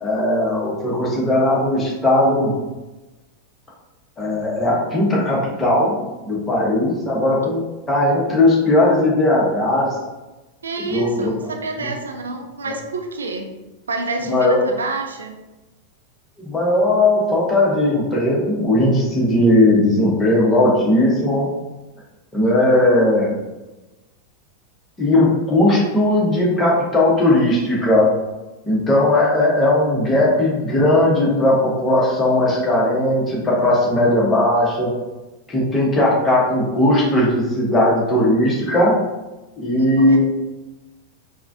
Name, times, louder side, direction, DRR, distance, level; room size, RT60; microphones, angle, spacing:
voice 1, 0.0-2.5 4.2-9.9 10.8-11.3 11.8-11.9 14.3-14.6 16.4-21.5 22.3-23.3 25.0-28.1 28.6-34.9 35.5-38.9 39.6-40.2, left 1 dB, 15° left, -4 dB, 1.2 m, -17 dB
voice 2, 10.6-13.5 13.9-15.4 39.8-40.2, right 3 dB, 70° right, 3 dB, 0.4 m, -28 dB
4.6 x 2.4 x 2.7 m, 1.1 s
figure-of-eight pair, 90°, 0 cm